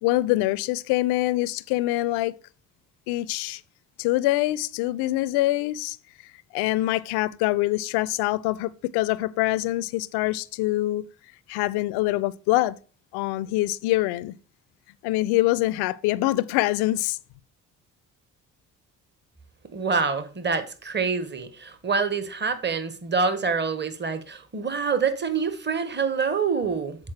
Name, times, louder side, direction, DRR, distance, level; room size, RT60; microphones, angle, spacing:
voice 1, 0.0-2.3 3.1-3.6 4.0-6.0 6.5-11.1 11.5-12.8 13.1-14.4 15.0-17.2, left 17 dB, 80° left, 0.5 m, -24 dB
voice 2, 19.7-27.0, right 5 dB, 25° right, 1.3 m, -26 dB
7.4 x 4.1 x 6.4 m
hypercardioid pair, 55°, 39 cm